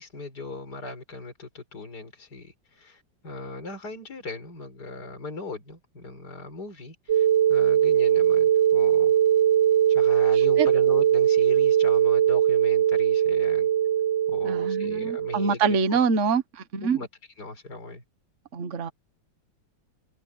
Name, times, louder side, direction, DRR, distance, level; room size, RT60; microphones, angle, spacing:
voice 1, 0.0-9.2 9.9-13.7 14.3-16.0 16.8-17.1 17.4-18.0, left 3 dB, 50° left, 5.6 m, -38 dB
sound 1, 7.1-15.6, right 10 dB, 55° right, 0.7 m, -21 dB
voice 2, 14.4-17.0 18.5-18.9, right 5 dB, 40° right, 1.5 m, -25 dB
omnidirectional pair, 2.2 m